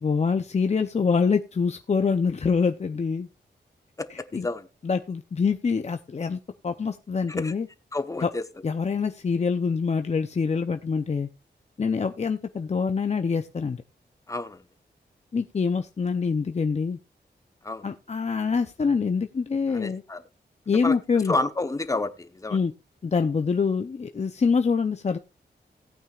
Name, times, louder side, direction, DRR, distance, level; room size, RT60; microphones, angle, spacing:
voice 1, 0.0-3.3 4.1-4.5 4.8-7.7 8.2-8.3 8.6-11.3 11.8-13.8 15.3-17.0 17.8-20.0 20.7-21.3 22.5-22.7 23.0-25.2, left 5 dB, 40° left, 0.6 m, -25 dB
voice 2, 4.0-4.7 7.4-7.5 7.9-8.4 14.3-14.6 17.6-17.8 19.7-20.2 20.7-20.9 21.3-22.6, left 2 dB, 20° left, 0.9 m, -30 dB
17.0 x 8.9 x 2.4 m
wide cardioid pair, 145°, 18 cm